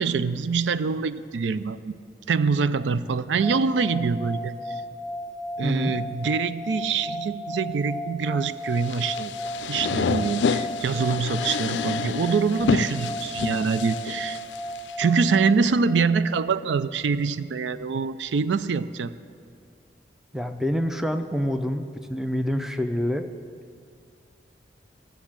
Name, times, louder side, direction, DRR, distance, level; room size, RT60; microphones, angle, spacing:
voice 1, 0.0-2.0 2.3-4.8 5.6-9.3 9.7-14.4 15.0-19.1, right 5 dB, 85° right, 14 dB, 0.4 m, -25 dB
sound 1, 3.4-15.5, equal, 25° right, 1.1 m, -34 dB
voice 2, 5.6-5.9 20.3-23.2, equal, ahead, 7 dB, 0.4 m, -26 dB
sound 2, 8.8-14.9, left 5 dB, 85° left, 0.4 m, -29 dB
14.5 x 7.1 x 7.3 m, 2.2 s
head